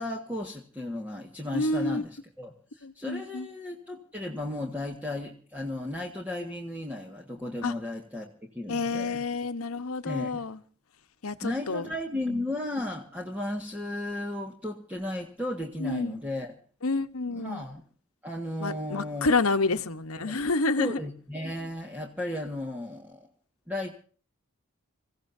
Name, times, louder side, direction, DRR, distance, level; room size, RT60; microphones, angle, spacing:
voice 1, 0.0-9.3 10.0-10.5 11.4-16.6 17.3-17.8 18.2-19.3 20.2-20.4 20.8-23.3 23.7-23.9, left 1 dB, 5° right, 1.7 m, -35 dB
voice 2, 1.5-2.0 2.8-3.5 7.6-7.7 8.7-10.6 11.2-11.9 12.3-12.5 15.8-16.2 16.8-17.6 18.6-21.0, left 3 dB, 80° left, 1.2 m, -29 dB
27.5 x 16.0 x 2.7 m
head